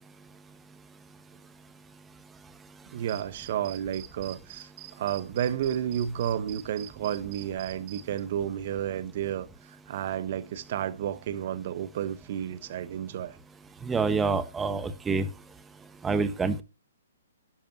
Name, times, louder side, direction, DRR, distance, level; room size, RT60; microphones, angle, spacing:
voice 1, 2.9-4.7 5.0-13.4, right 10 dB, 50° right, 1.1 m, -31 dB
sound 1, 3.1-8.2, right 15 dB, 35° right, 1.3 m, -46 dB
voice 2, 13.8-15.3 16.0-16.6, right 4 dB, 10° right, 1.2 m, -27 dB
11.5 x 10.5 x 2.9 m
hypercardioid pair, 140°, 0 cm